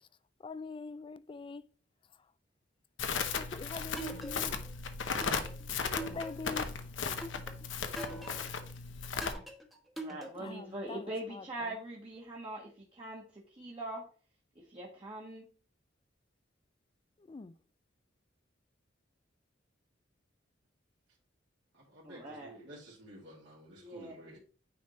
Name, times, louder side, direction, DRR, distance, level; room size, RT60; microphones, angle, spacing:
voice 1, 0.4-1.6 3.4-4.5 6.1-6.7 10.4-11.1 17.3-17.5, left 4 dB, 25° left, 0.3 m, -43 dB
Crackle, 3.0-9.3, left 5 dB, 75° left, 0.9 m, -36 dB
sound 1, 4.0-4.7 5.2-6.7 7.2-8.6 9.2-10.7, right 2 dB, ahead, 1.1 m, -44 dB
voice 2, 10.0-14.0 14.7-15.4 22.0-22.5 23.7-24.1, right 1 dB, 30° right, 1.3 m, -42 dB
voice 3, 21.7-24.4, right 1 dB, 70° right, 2.2 m, -52 dB
9.3 x 3.5 x 4.1 m
head